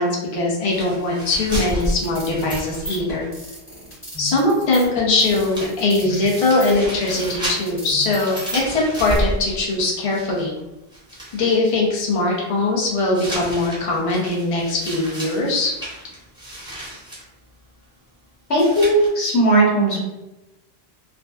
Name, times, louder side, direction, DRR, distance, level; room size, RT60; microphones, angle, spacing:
voice 1, 0.0-3.3 4.2-10.5 11.3-15.7, left 2 dB, 40° left, -3 dB, 0.5 m, -21 dB
sound 1, 0.7-3.3 3.6-3.7 4.9-5.0 5.2-10.6 10.9-11.6 13.1-17.2 18.5-19.1, equal, 5° right, 0.6 m, -31 dB
sound 2, 1.7-9.2, left 1 dB, 10° left, 1.2 m, -35 dB
voice 2, 18.5-20.0, right 1 dB, 85° left, -4 dB, 1.2 m, -17 dB
2.5 x 2.2 x 2.2 m, 0.98 s
omnidirectional pair, 1.1 m